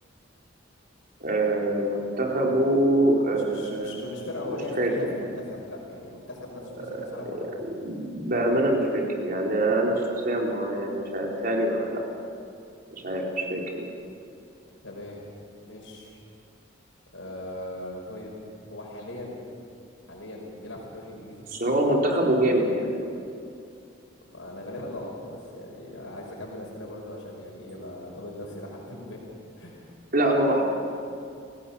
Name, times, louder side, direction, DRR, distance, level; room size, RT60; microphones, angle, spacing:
voice 1, 1.2-4.1 4.5-4.9 7.2-7.3 7.6-12.0 12.9-13.9 21.5-23.2 30.1-30.6, right 1 dB, 45° right, -1 dB, 4.2 m, -25 dB
voice 2, 3.3-7.5 14.8-15.2 15.6-16.2 17.1-18.3 18.6-19.4 20.1-21.5 24.3-29.2 29.6-29.9, left 1 dB, 75° left, -2 dB, 5.4 m, -39 dB
29.5 x 18.0 x 7.2 m, 2.4 s
head